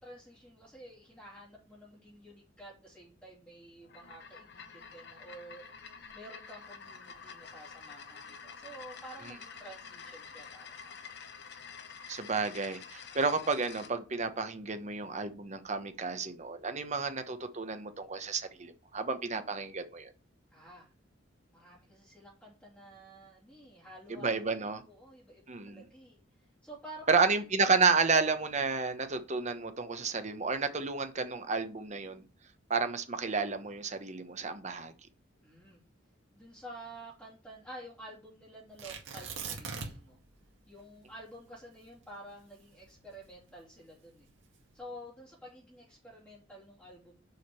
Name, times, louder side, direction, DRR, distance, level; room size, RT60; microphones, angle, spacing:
voice 1, 0.0-5.7 6.1-11.2 20.5-20.9 21.5-26.2 26.6-27.3 35.4-35.9 36.3-40.2 40.7-44.3 44.7-47.1, right 1 dB, 10° left, 3.2 m, -50 dB
sound 1, 3.8-13.9, left 6 dB, 60° left, 1.1 m, -49 dB
voice 2, 12.1-20.1 24.1-24.8 25.5-25.8 27.1-32.2 32.7-34.9, right 4 dB, 40° right, 1.0 m, -31 dB
Tearing, 38.8-40.2 40.5-40.6 41.1-43.5 44.2-44.6, right 5 dB, 80° right, 2.0 m, -41 dB
6.6 x 5.1 x 6.8 m
head